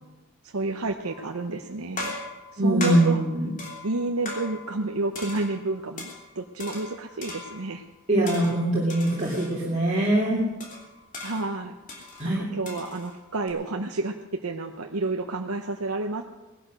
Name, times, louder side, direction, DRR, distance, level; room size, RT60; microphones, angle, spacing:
voice 1, 0.4-2.2 2.5-3.2 3.8-6.1 6.4-7.8 11.2-11.8 12.2-16.2, right 3 dB, 85° right, 3 dB, 0.9 m, -30 dB
sound 1, 1.0-1.4 2.0-4.9 5.1-6.2 6.6-7.8 8.3-9.6 10.0-10.1 10.6-13.5, left 2 dB, 35° left, 3.0 m, -39 dB
voice 2, 2.6-3.5 8.1-10.4 12.2-12.5, right 1 dB, 35° right, -6 dB, 2.8 m, -23 dB
18.5 x 11.5 x 6.3 m, 1.1 s
head